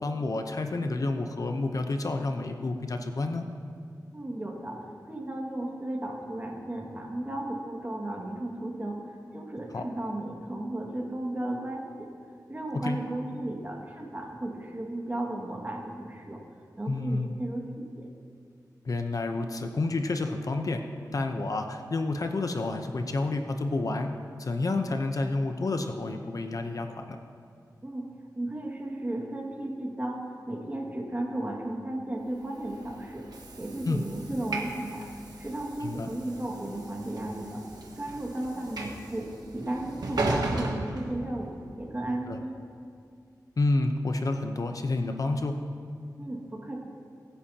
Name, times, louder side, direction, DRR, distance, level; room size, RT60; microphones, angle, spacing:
voice 1, 0.0-3.5 9.7-9.8 12.7-13.0 16.9-17.4 18.8-20.8 21.1-24.1 24.4-27.2 33.8-34.0 35.8-36.1 42.3-42.4 43.6-45.5, left 2 dB, 55° left, 5 dB, 0.8 m, -29 dB
voice 2, 4.1-12.1 12.5-16.4 16.8-18.1 27.8-28.1 28.4-33.3 33.6-35.0 35.4-37.6 38.0-41.5 41.8-42.5 46.2-46.8, right 1 dB, 25° right, -1 dB, 2.0 m, -34 dB
Train / Sliding door, 32.5-41.7, right 2 dB, 75° right, 1.5 m, -36 dB
23.5 x 10.0 x 2.9 m, 2.3 s
wide cardioid pair, 85°, 7 cm